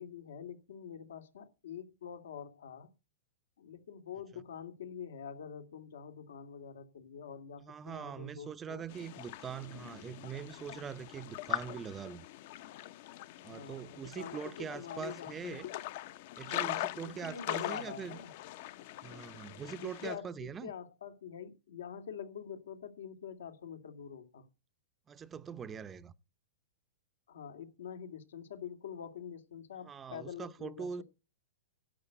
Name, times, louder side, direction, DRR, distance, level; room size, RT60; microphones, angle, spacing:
voice 1, 0.0-2.9 3.6-8.8 13.4-15.6 16.4-18.3 19.8-24.4 27.3-31.0, left 8 dB, 85° left, 2.4 m, -46 dB
voice 2, 7.6-12.3 13.4-15.7 16.4-18.2 19.0-20.7 25.1-26.1 29.8-31.0, right 7 dB, 20° right, 0.6 m, -43 dB
sound 1, 8.9-20.1, left 15 dB, 55° left, 0.9 m, -42 dB
11.5 x 8.1 x 7.8 m
hypercardioid pair, 140°, 0 cm